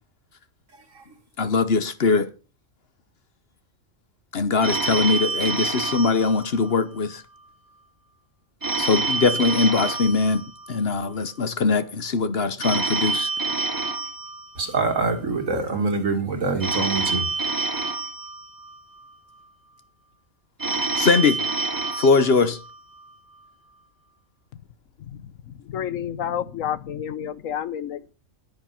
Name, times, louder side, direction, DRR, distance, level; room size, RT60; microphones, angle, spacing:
voice 1, 1.4-2.3 4.3-7.2 8.8-10.4 10.7-13.3 21.0-21.4 22.0-22.6, left 4 dB, 50° left, 1.2 m, -21 dB
Telephone, 4.6-7.1 8.6-11.1 12.6-15.1 16.6-19.1 20.6-23.1, right 3 dB, 15° right, 0.9 m, -28 dB
voice 2, 14.6-17.3, right 3 dB, 75° right, 2.6 m, -25 dB
voice 3, 25.7-28.1, left 9 dB, 80° left, 1.2 m, -29 dB
10.5 x 9.3 x 5.9 m
omnidirectional pair, 1.4 m